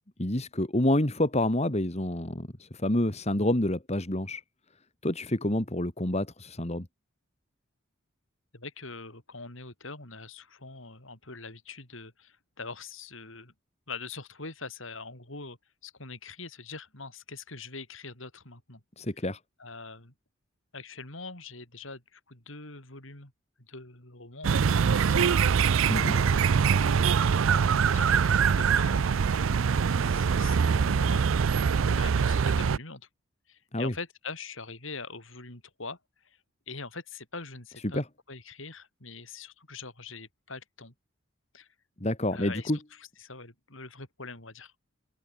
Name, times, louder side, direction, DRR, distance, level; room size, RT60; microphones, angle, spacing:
voice 1, 0.2-4.4 5.0-6.9 19.0-19.4 25.9-26.1 33.7-33.9 37.9-38.0 42.0-42.8, left 1 dB, 30° left, 2.2 m, -28 dB
voice 2, 8.5-13.5 13.9-15.6 15.8-18.8 19.6-20.1 20.7-23.3 23.6-27.3 27.7-29.6 29.9-31.4 31.9-33.1 33.5-36.4 36.7-38.0 38.3-40.9 41.5-41.7 42.3-44.7, left 4 dB, 70° left, 6.3 m, -43 dB
sound 1, 24.4-32.8, right 6 dB, 75° right, 0.5 m, -23 dB
open air
head